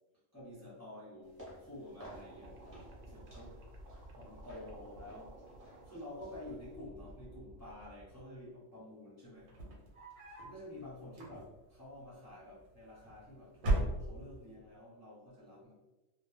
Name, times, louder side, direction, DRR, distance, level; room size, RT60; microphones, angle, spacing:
voice 1, 0.3-3.6 4.1-5.3 5.8-9.5 10.4-15.7, left 1 dB, 20° left, -9 dB, 0.5 m, -50 dB
sound 1, 1.2-6.8, equal, 15° right, 0.8 m, -56 dB
sound 2, 2.0-8.2, right 1 dB, 70° right, 0.8 m, -53 dB
sound 3, 9.4-10.6 11.1-11.8 12.7-13.2 13.5-14.5, right 2 dB, 85° right, 1.1 m, -35 dB
2.3 x 2.1 x 3.1 m, 1.1 s
omnidirectional pair, 1.4 m